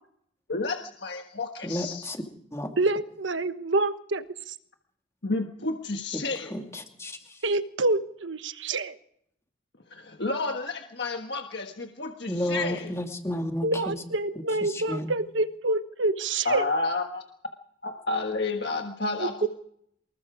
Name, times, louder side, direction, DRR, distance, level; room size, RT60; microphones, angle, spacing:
voice 1, 0.5-2.0 5.2-6.5 9.9-12.9 16.4-17.2 17.8-19.5, left 3 dB, 60° left, 4 dB, 1.5 m, -30 dB
voice 2, 1.6-2.2 2.5-2.7 6.5-7.2 12.3-13.7 14.9-15.0, left 1 dB, 15° left, 3 dB, 2.4 m, -31 dB
voice 3, 2.8-4.6 7.4-9.0 13.6-16.7 19.2-19.3, right 2 dB, 80° right, 11 dB, 1.2 m, -27 dB
24.5 x 21.0 x 5.0 m, 0.69 s
head